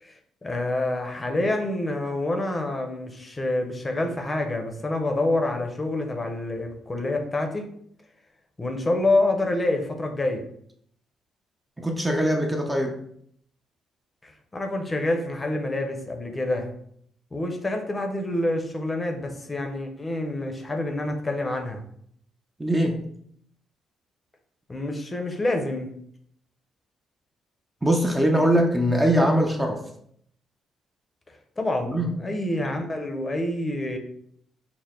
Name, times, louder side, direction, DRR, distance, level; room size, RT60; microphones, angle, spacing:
voice 1, 0.0-7.7 8.6-10.4 14.2-16.7 17.3-21.8 24.7-25.9 31.6-34.0, left 2 dB, 25° left, 4 dB, 0.7 m, -27 dB
voice 2, 11.8-13.0 22.6-23.1 27.8-29.8 31.8-32.2, equal, 10° right, 2 dB, 0.5 m, -22 dB
4.6 x 2.0 x 3.6 m, 0.67 s
cardioid pair, 90°, 0 cm